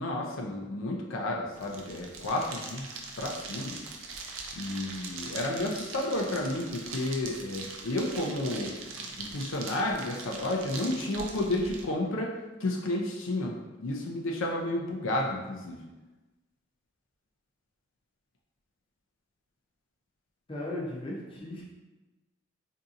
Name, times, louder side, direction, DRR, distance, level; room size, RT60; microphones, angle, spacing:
voice 1, 0.0-3.8 4.6-8.7 9.0-12.3 12.6-15.8, left 1 dB, 70° left, 0 dB, 0.4 m, -31 dB
sound 1, 1.5-11.8, right 4 dB, 75° right, 0.5 m, -42 dB
voice 2, 20.5-21.6, left 1 dB, 25° left, -4 dB, 0.6 m, -36 dB
3.8 x 2.7 x 2.4 m, 1.1 s
head